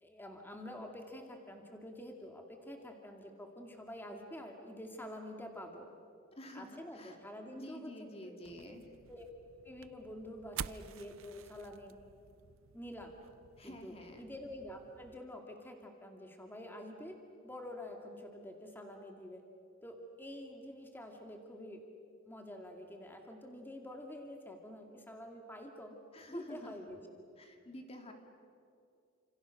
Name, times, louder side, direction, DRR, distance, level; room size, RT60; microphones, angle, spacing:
voice 1, 0.0-5.9 6.5-8.3 8.6-8.7 9.1-9.3 9.6-11.9 12.7-13.2 13.6-17.2 17.4-19.4 19.8-21.8 22.2-26.0 26.3-27.0, left 1 dB, 10° left, 2 dB, 2.2 m, -47 dB
voice 2, 6.4-7.2 7.5-8.9 13.6-14.3 26.1-26.7 27.4-28.1, left 1 dB, 30° left, 4 dB, 2.3 m, -49 dB
sound 1, 8.4-15.2, right 8 dB, 70° right, 0.6 m, -50 dB
30.0 x 27.5 x 6.5 m, 2.5 s
head